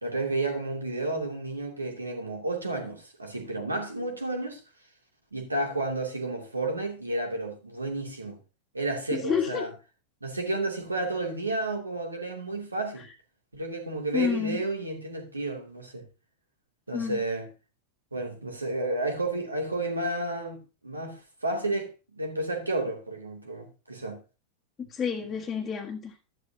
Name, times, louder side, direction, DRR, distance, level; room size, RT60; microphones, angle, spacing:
voice 1, 0.0-4.6 5.3-8.4 8.7-9.7 10.2-13.1 13.5-16.0 16.9-17.5 18.1-24.2 25.2-25.3, right 2 dB, 80° right, 2.6 m, -31 dB
voice 2, 9.1-9.6 14.1-14.6 16.9-17.2 24.9-26.1, left 7 dB, 20° left, 1.5 m, -29 dB
13.0 x 11.0 x 2.8 m
figure-of-eight pair, 90°, 0 cm